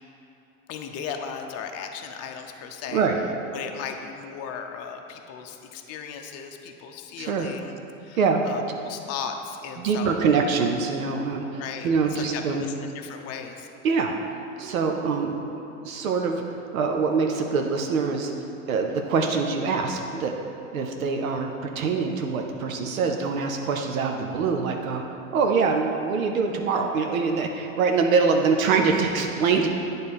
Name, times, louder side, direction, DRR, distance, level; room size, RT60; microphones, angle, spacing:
voice 1, 0.7-3.1 3.5-7.7 8.0-8.2 8.4-10.4 11.4-11.9 12.2-13.7, left 7 dB, 40° left, 4 dB, 0.6 m, -36 dB
voice 2, 7.2-7.5 8.2-8.4 9.8-12.7 13.8-14.2 14.6-18.3 18.7-20.3 20.7-29.7, right 5 dB, 75° right, 3 dB, 0.7 m, -24 dB
9.2 x 3.4 x 4.2 m, 2.9 s
hypercardioid pair, 85°, 41 cm